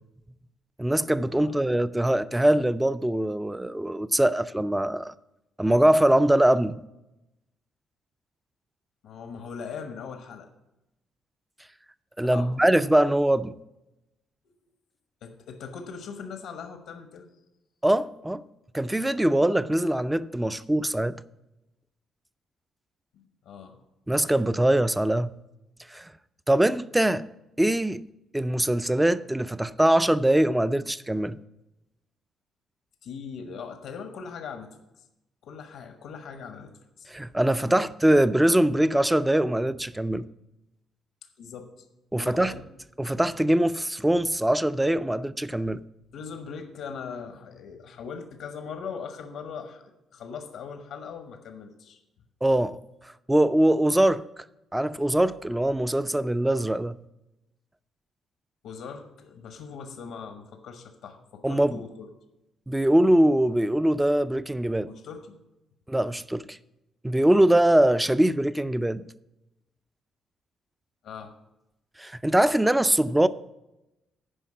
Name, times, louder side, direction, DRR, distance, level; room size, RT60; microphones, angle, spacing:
voice 1, 0.8-5.1 5.6-6.8 12.2-13.6 17.8-18.4 18.7-21.2 24.1-25.4 25.9-26.1 26.5-27.3 27.6-28.0 28.3-31.4 37.1-40.2 42.1-42.5 43.0-45.8 52.4-52.8 53.3-54.2 54.7-57.0 61.4-61.8 62.7-64.9 65.9-66.6 67.0-69.1 72.0-73.3, right 1 dB, 10° right, 0.4 m, -22 dB
voice 2, 9.0-10.5 12.2-12.6 15.2-17.3 23.1-23.8 33.0-35.0 35.4-37.1 37.6-37.9 41.4-41.9 42.2-42.6 46.1-52.0 58.6-62.1 64.8-65.4 67.1-67.3 71.0-71.3, left 6 dB, 85° left, 1.0 m, -40 dB
10.0 x 5.2 x 7.3 m
cardioid pair, 90°, 0 cm